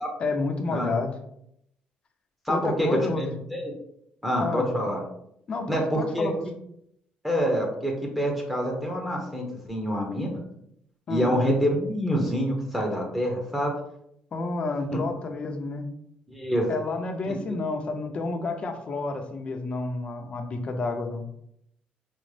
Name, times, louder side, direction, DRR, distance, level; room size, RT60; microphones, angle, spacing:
voice 1, 0.2-1.1 2.5-3.3 4.4-4.7 5.5-6.4 11.1-11.3 14.3-15.9 16.7-21.2, left 3 dB, 35° left, 4 dB, 0.6 m, -30 dB
voice 2, 2.5-3.7 4.2-5.0 5.7-6.3 7.2-10.4 11.1-13.7 14.9-15.0 16.3-16.7 17.3-17.4, equal, 5° right, 0 dB, 0.8 m, -26 dB
5.0 x 2.0 x 3.2 m, 0.75 s
cardioid pair, 125°, 3 cm